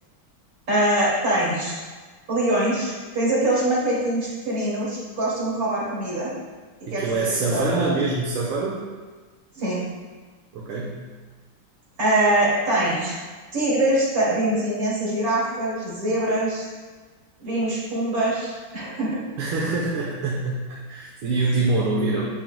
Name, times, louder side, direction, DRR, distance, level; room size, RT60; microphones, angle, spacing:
voice 1, 0.7-1.8 2.3-6.3 6.9-7.0 7.4-8.0 9.5-9.8 12.0-13.1 13.5-16.7 17.4-19.2, right 1 dB, 45° right, -7 dB, 3.0 m, -23 dB
voice 2, 6.9-8.8 10.5-11.1 19.4-22.3, right 3 dB, 80° right, -5 dB, 1.8 m, -25 dB
9.2 x 7.4 x 2.2 m, 1.4 s
omnidirectional pair, 2.2 m